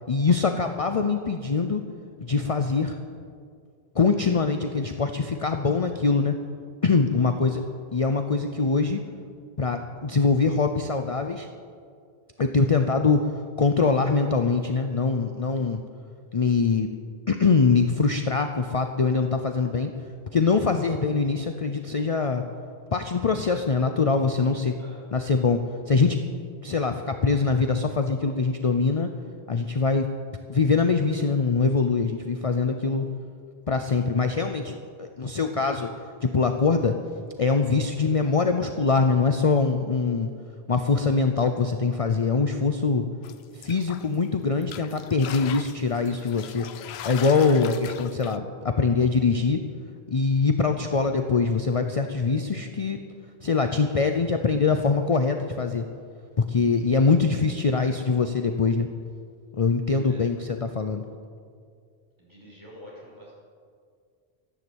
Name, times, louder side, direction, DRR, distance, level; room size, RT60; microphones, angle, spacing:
voice 1, 0.1-1.8 2.2-3.0 3.9-6.3 6.8-7.6 7.9-9.0 9.6-11.5 12.4-13.3 13.6-15.8 16.3-16.9 17.3-19.9 20.3-22.4 22.9-24.8 25.1-26.2 26.6-29.1 29.5-30.1 30.5-33.1 33.7-35.9 36.2-37.0 37.4-40.3 40.7-43.0 43.5-46.7 47.0-49.6 50.1-53.0 53.4-55.9 56.4-58.9 59.6-61.0, left 4 dB, 40° left, 6 dB, 0.7 m, -23 dB
voice 2, 7.1-7.5 24.8-25.1 59.9-60.3 62.2-63.3, equal, 25° right, -5 dB, 5.4 m, -46 dB
sound 1, 43.2-44.3 44.6-48.4, left 10 dB, 85° left, 0.8 m, -40 dB
13.0 x 11.0 x 8.1 m, 2.2 s
omnidirectional pair, 1.0 m